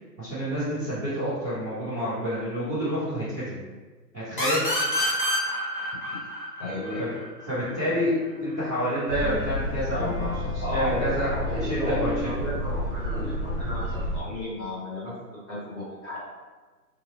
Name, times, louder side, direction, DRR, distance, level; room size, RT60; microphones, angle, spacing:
voice 1, 0.2-3.6 4.1-4.7 7.0-7.1 7.5-12.5, equal, 5° right, -27 dB, 0.7 m, -29 dB
sound 1, 4.4-7.8, left 1 dB, 35° left, 0.5 m, -28 dB
voice 2, 6.6-7.0 10.6-16.2, left 1 dB, 15° left, -13 dB, 1.1 m, -34 dB
sound 2, 6.7-8.1 8.3-13.6, left 3 dB, 80° left, 1.1 m, -37 dB
sound 3, 9.1-14.2, left 1 dB, 40° right, 0.4 m, -30 dB
3.2 x 2.1 x 4.2 m, 1.3 s
hypercardioid pair, 165°, 49 cm